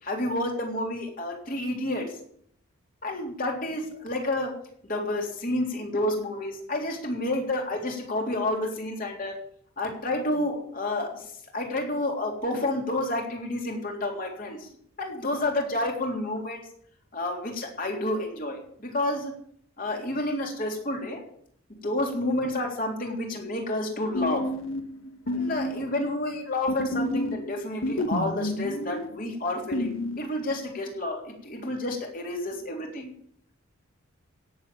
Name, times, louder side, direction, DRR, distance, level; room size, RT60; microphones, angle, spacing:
voice 1, 0.0-2.1 3.0-4.5 4.9-9.4 9.8-11.2 11.5-14.7 15.0-16.6 17.1-19.3 19.8-21.2 21.8-24.4 25.3-33.1, left 1 dB, 40° left, 1 dB, 3.6 m, -30 dB
sound 1, 24.1-26.4 26.7-30.2, left 1 dB, 75° left, 1.6 m, -30 dB
17.0 x 7.4 x 8.8 m, 0.66 s
head